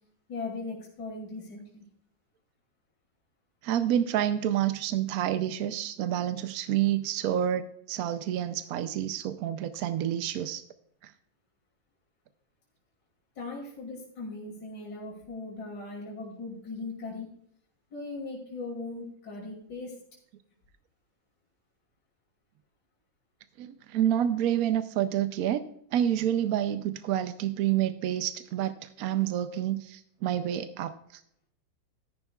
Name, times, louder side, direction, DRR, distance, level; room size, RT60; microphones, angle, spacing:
voice 1, 0.3-1.8 13.3-17.3 17.9-19.9, left 3 dB, 60° left, -3 dB, 3.2 m, -39 dB
voice 2, 3.6-10.6 11.0-11.1 23.6-25.6 25.9-31.2, right 11 dB, 70° right, 10 dB, 0.9 m, -28 dB
13.0 x 11.0 x 2.3 m, 0.67 s
omnidirectional pair, 2.1 m